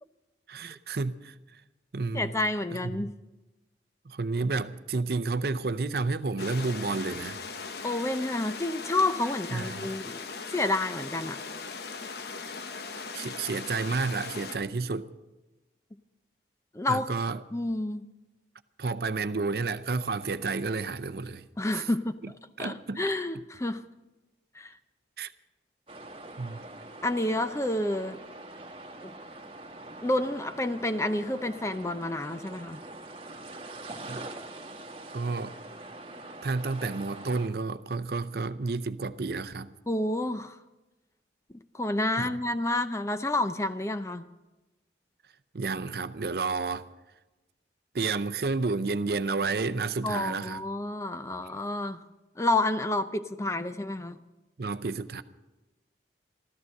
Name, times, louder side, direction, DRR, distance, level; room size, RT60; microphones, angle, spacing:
voice 1, 0.5-1.6 1.9-2.3 2.9-3.1 4.0-7.4 9.5-9.9 13.1-15.1 16.9-17.4 18.8-21.5 21.7-21.9 22.2-22.3 22.6-23.0 25.2-25.3 26.4-26.6 34.1-34.2 35.1-35.6 36.4-39.7 42.2-42.4 45.5-46.9 47.9-50.6 54.6-55.2, right 3 dB, 60° right, 0.6 m, -31 dB
voice 2, 2.1-3.1 7.8-10.2 10.5-11.4 16.7-17.1 17.5-18.0 21.6-22.2 22.6-23.8 24.5-24.7 27.0-28.2 29.0-29.1 30.0-32.8 39.9-40.6 41.7-44.2 50.0-52.0 52.4-54.2, left 2 dB, 15° left, 0.5 m, -29 dB
sound 1, 6.4-14.6, left 4 dB, 65° left, 0.9 m, -39 dB
sound 2, 25.9-37.5, right 2 dB, 30° right, 1.4 m, -44 dB
14.0 x 13.5 x 6.5 m
head